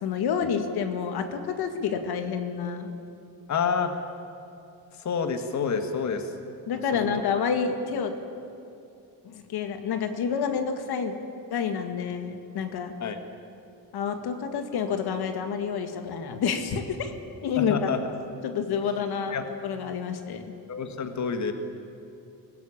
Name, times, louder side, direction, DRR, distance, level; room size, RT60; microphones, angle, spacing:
voice 1, 0.0-2.9 6.7-8.1 9.2-11.2 11.5-12.9 13.9-17.1 17.4-17.8 18.4-19.4 19.6-20.5, left 6 dB, 80° left, 7 dB, 2.0 m, -29 dB
voice 2, 3.5-3.9 4.9-6.3 6.9-7.1 13.0-13.2 17.6-18.1 19.3-19.4 20.7-21.5, left 6 dB, 45° left, 7 dB, 1.8 m, -28 dB
22.5 x 19.5 x 8.8 m, 2.7 s
cardioid pair, 145°, 38 cm